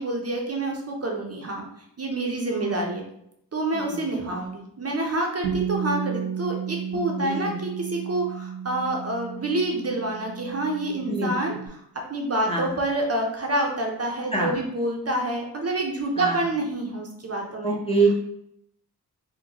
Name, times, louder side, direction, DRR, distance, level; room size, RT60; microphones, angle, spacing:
voice 1, 0.0-1.6 2.0-3.0 3.5-11.8 12.1-17.8, right 2 dB, 40° right, 1 dB, 0.5 m, -27 dB
voice 2, 2.5-2.8 3.7-4.2 7.2-7.6 11.1-11.3 12.5-12.7 14.3-14.5 16.2-16.4 17.6-18.1, right 2 dB, 15° left, -2 dB, 0.5 m, -25 dB
Bass guitar, 5.4-11.7, right 7 dB, 80° right, 0.8 m, -33 dB
3.8 x 2.1 x 2.8 m, 0.73 s
wide cardioid pair, 125°, 40 cm